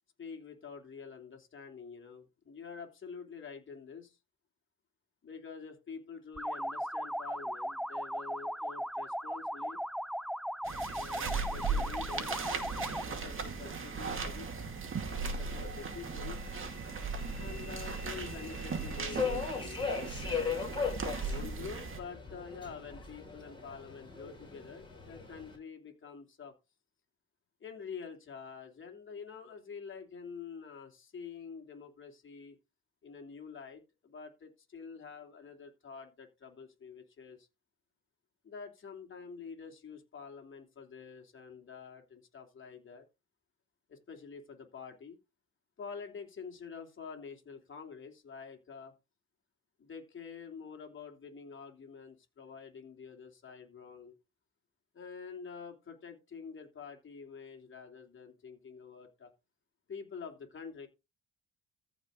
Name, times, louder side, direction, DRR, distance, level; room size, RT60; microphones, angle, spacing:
voice 1, 0.2-4.2 5.2-9.8 10.9-12.4 13.0-14.6 15.1-16.5 17.3-20.7 21.2-26.5 27.6-32.6 33.0-37.5 38.4-43.0 43.9-45.2 45.8-48.9 49.8-54.1 54.9-59.3 59.9-60.9, left 6 dB, 40° left, 3.0 m, -47 dB
sound 1, 6.4-13.2, equal, ahead, 0.4 m, -37 dB
sound 2, 10.6-22.0, right 4 dB, 45° right, 2.3 m, -37 dB
Subway metro underground, 15.0-25.6, left 5 dB, 15° left, 5.5 m, -40 dB
14.5 x 5.2 x 3.8 m
cardioid pair, 90°, 30 cm